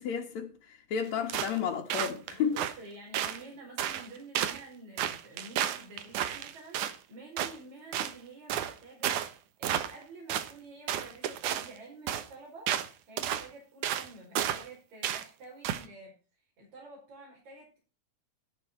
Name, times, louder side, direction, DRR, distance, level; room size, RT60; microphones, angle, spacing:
voice 1, 0.0-2.5, left 7 dB, 70° left, 2.8 m, -32 dB
sound 1, 1.3-1.6 1.9-2.7 3.1-3.4 3.8-4.1 4.4-4.6 5.0-7.0 7.4-7.6 7.9-8.1 8.5-8.7 9.0-9.3 9.6-10.0 10.3-10.5 10.9-11.7 12.1-12.3 12.7-12.9 13.2-13.5 13.8-14.1 14.4-14.7 15.0-15.2 15.6-15.8, right 10 dB, 85° right, 2.7 m, -32 dB
voice 2, 2.3-9.3 9.6-12.8 13.1-17.8, right 2 dB, 70° right, 6.4 m, -49 dB
12.0 x 12.0 x 4.4 m
omnidirectional pair, 3.4 m